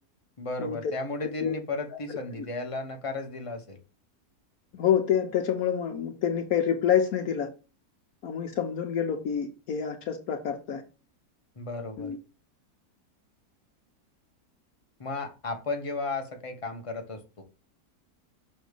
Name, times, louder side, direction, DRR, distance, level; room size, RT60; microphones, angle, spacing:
voice 1, 0.4-3.8 11.6-12.1 15.0-17.4, left 3 dB, 25° left, 0.9 m, -34 dB
voice 2, 4.7-7.5 8.2-10.8 12.0-12.2, left 8 dB, 70° left, 1.2 m, -27 dB
6.2 x 3.2 x 5.1 m
omnidirectional pair, 1.7 m